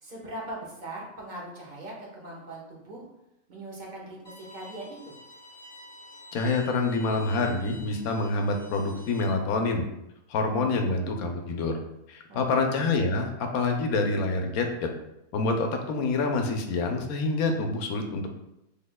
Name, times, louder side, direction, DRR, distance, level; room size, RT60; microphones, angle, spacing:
voice 1, 0.0-3.1 3.5-5.2 12.3-12.7, right 1 dB, 35° right, -4 dB, 1.1 m, -40 dB
Bowed string instrument, 4.2-9.2, left 1 dB, 30° left, 1.8 m, -49 dB
voice 2, 6.3-9.8 10.3-11.7 12.1-14.9 15.3-18.3, left 3 dB, 70° left, 4 dB, 1.0 m, -27 dB
6.2 x 3.4 x 2.2 m, 0.85 s
omnidirectional pair, 1.7 m